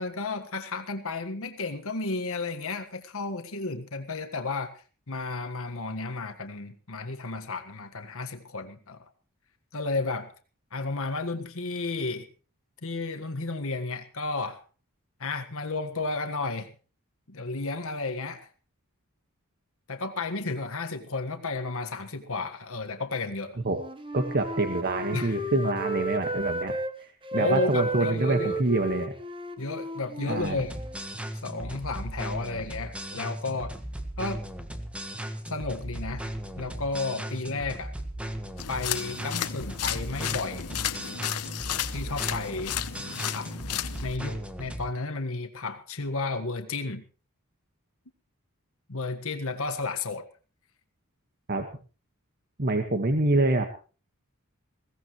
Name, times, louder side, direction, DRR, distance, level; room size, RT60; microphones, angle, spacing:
voice 1, 0.0-4.7 5.1-9.0 9.7-10.3 10.7-12.3 12.8-14.6 15.2-16.7 17.3-18.5 19.9-23.6 25.1-25.4 27.3-28.6 29.6-30.7 31.4-33.7 34.2-34.4 35.4-36.3 36.6-37.9 38.7-40.7 41.9-42.8 43.3-43.5 44.0-47.0 48.9-50.2, left 3 dB, 65° left, 6 dB, 1.6 m, -32 dB
Wind instrument woodwind instrument, 23.6-26.9 27.2-31.0, right 1 dB, 25° right, 1.3 m, -33 dB
voice 2, 24.1-29.1 30.3-30.6 51.5-51.6 52.6-53.6, right 2 dB, 45° right, 6 dB, 1.6 m, -26 dB
sound 1, 30.4-44.9, right 1 dB, 5° right, 1.5 m, -37 dB
sound 2, 38.6-44.2, left 11 dB, 85° left, 0.9 m, -33 dB
21.5 x 17.0 x 3.2 m, 0.36 s
head